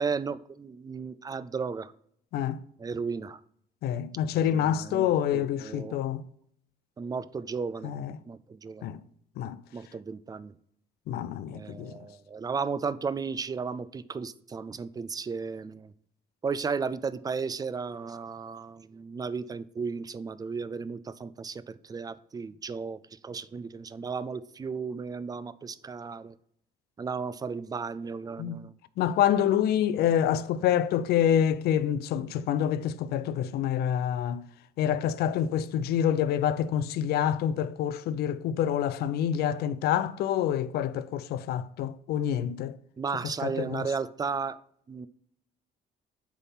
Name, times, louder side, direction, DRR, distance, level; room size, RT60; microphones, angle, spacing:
voice 1, 0.0-1.9 2.8-3.4 4.3-6.0 7.0-7.9 8.3-8.9 9.7-10.5 11.5-15.9 16.4-26.4 27.0-28.7 43.0-44.6 44.9-45.1, right 5 dB, 20° right, 0.4 m, -34 dB
voice 2, 3.8-6.3 7.8-8.2 8.8-9.0 9.4-9.6 11.1-11.9 28.4-28.7 29.0-34.5 34.8-42.8 43.2-43.9, left 10 dB, 70° left, 0.5 m, -27 dB
8.3 x 3.5 x 5.7 m
cardioid pair, 110°, 17 cm